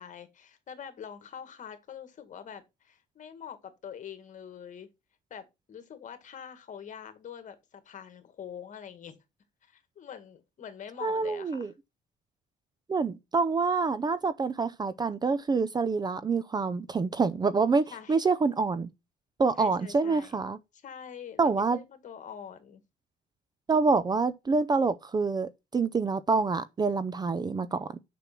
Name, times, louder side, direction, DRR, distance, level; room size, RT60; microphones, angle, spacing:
voice 1, 0.0-4.9 5.3-9.2 9.6-11.7 17.9-18.2 19.5-20.4 20.7-22.8, left 8 dB, 50° left, 1.9 m, -45 dB
voice 2, 11.0-11.7 12.9-18.9 19.4-20.6 21.4-21.8 23.7-28.0, right 4 dB, 25° right, 0.5 m, -27 dB
6.8 x 6.1 x 6.0 m
cardioid pair, 110°, 17 cm